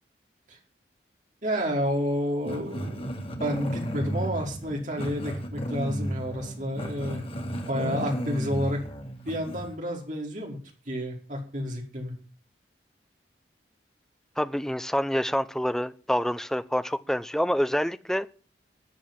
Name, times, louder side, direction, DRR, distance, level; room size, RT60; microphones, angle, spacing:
voice 1, 1.4-3.1 3.4-7.2 7.7-8.8 9.2-10.6 10.8-12.1, equal, 45° right, 0 dB, 4.8 m, -30 dB
Growling, 2.4-9.8, equal, 35° left, 2.4 m, -33 dB
voice 2, 14.4-18.3, equal, 5° left, 12 dB, 0.6 m, -27 dB
14.0 x 9.2 x 7.6 m, 0.40 s
head